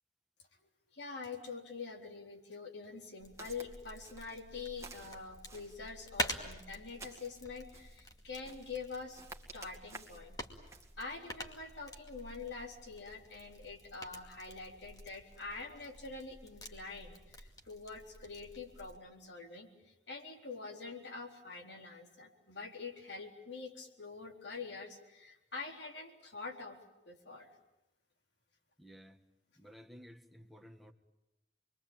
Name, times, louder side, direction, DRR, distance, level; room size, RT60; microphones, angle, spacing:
voice 1, 0.6-9.2 9.5-10.4 11.0-26.8 27.1-27.5, left 4 dB, 70° left, 3.9 m, -46 dB
sound 1, 3.2-19.0, left 1 dB, 20° left, 2.4 m, -47 dB
Walk footsteps, 3.4-3.7 4.0-4.4 4.8-5.8 6.2-7.3 7.7-8.0 8.4-8.8 9.1-10.3 10.7-10.9, right 3 dB, 15° right, 2.2 m, -52 dB
voice 2, 28.8-29.2 29.6-30.9, equal, ahead, 1.5 m, -55 dB
27.5 x 22.5 x 9.0 m
head